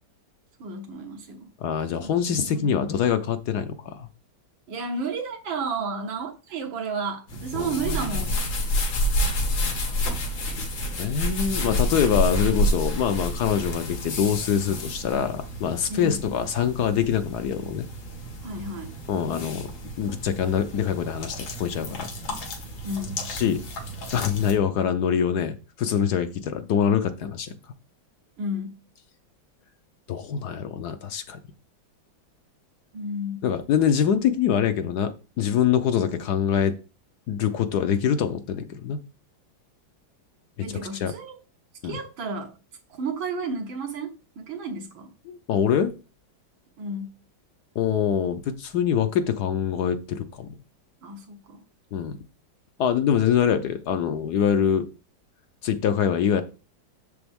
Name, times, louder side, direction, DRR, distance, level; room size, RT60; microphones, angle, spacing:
voice 1, 0.6-1.5 2.0-2.9 4.7-8.4 15.9-16.2 18.4-18.9 22.8-23.2 28.4-28.8 32.9-33.5 40.6-41.4 41.8-42.5 42.9-44.1 44.4-45.1 46.8-47.2 51.0-51.6, right 3 dB, 85° right, 2.0 m, -32 dB
voice 2, 1.6-4.1 7.5-8.2 11.0-17.9 19.1-19.7 20.0-22.1 23.3-23.6 24.1-27.5 30.1-31.4 33.4-36.7 37.3-39.0 40.7-41.1 41.8-42.0 45.3-45.9 47.8-50.5 51.9-52.2 52.8-54.9 55.6-56.4, left 8 dB, 70° left, 1.1 m, -24 dB
sound 1, 7.3-24.5, left 1 dB, 85° left, 2.5 m, -29 dB
7.0 x 6.9 x 3.5 m
omnidirectional pair, 2.1 m